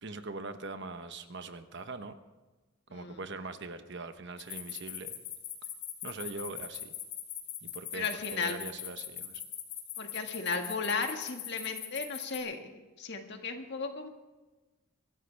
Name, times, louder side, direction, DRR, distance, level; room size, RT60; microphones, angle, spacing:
voice 1, 0.0-2.1 2.9-5.2 6.0-6.9 7.6-9.4, right 3 dB, 50° right, 9 dB, 1.0 m, -42 dB
sound 1, 4.4-12.4, left 11 dB, 75° left, 2.8 m, -40 dB
voice 2, 7.9-8.6 10.0-12.7 13.0-14.1, left 4 dB, 50° left, 4 dB, 1.8 m, -35 dB
24.0 x 13.5 x 3.4 m, 1.2 s
head